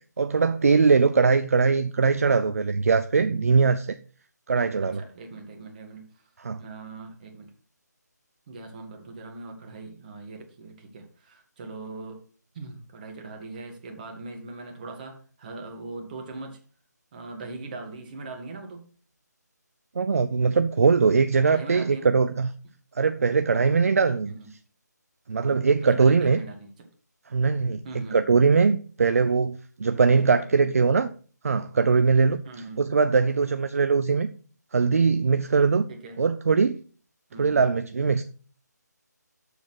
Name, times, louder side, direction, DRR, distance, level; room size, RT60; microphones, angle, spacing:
voice 1, 0.2-4.0 4.5-5.0 6.5-6.6 20.0-22.5 23.0-24.3 25.3-26.4 27.3-31.1 31.4-32.4 32.8-34.3 34.7-35.9 36.2-36.8 37.4-38.2, right 5 dB, 50° right, 0.5 m, -21 dB
voice 2, 4.8-6.2 6.6-7.5 8.5-12.3 12.5-16.6 17.1-18.9 21.5-22.1 24.3-24.5 25.8-26.9 27.8-28.2 30.2-30.7 32.4-32.9 35.9-36.2 37.3-37.7, right 3 dB, 30° right, 1.8 m, -40 dB
7.0 x 6.7 x 5.9 m
figure-of-eight pair, 150°, 10 cm